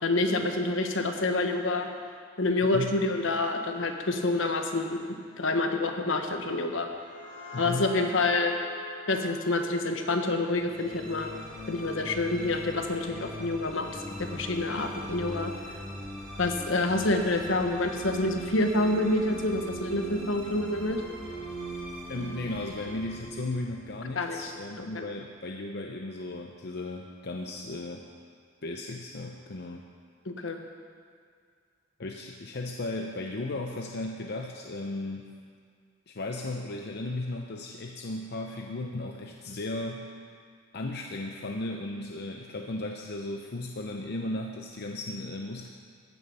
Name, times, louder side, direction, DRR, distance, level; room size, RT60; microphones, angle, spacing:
voice 1, 0.0-1.9 2.4-5.0 5.4-6.9 7.6-8.5 9.1-11.4 11.7-15.5 16.4-21.0 24.1-24.5 24.8-25.0 30.2-30.6, left 2 dB, 75° left, 5 dB, 1.2 m, -27 dB
sound 1, 6.7-12.2, left 3 dB, 40° left, 2.7 m, -46 dB
voice 2, 7.5-7.9 22.1-28.0 28.6-29.8 32.0-35.3 36.1-40.2 40.7-45.7, left 2 dB, 55° left, 2 dB, 0.7 m, -35 dB
sound 2, 10.6-25.0, right 1 dB, 5° left, 3.3 m, -40 dB
15.0 x 9.4 x 5.6 m, 2.1 s
head